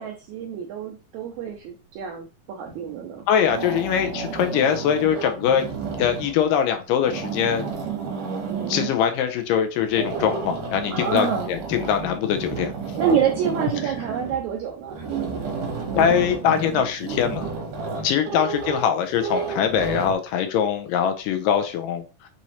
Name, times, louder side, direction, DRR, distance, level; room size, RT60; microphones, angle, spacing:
voice 1, 0.0-3.3 8.5-8.8 10.9-11.5 13.0-15.4 17.9-18.1, right 7 dB, 90° right, 1.7 m, -27 dB
sound 1, 2.7-3.1 3.4-6.4 6.9-9.0 9.8-20.1, right 5 dB, 70° right, 2.5 m, -31 dB
voice 2, 3.3-5.7 6.0-7.6 8.7-12.7 15.9-17.5 18.0-22.3, left 8 dB, 80° left, 2.2 m, -22 dB
6.2 x 3.0 x 2.7 m
omnidirectional pair, 4.0 m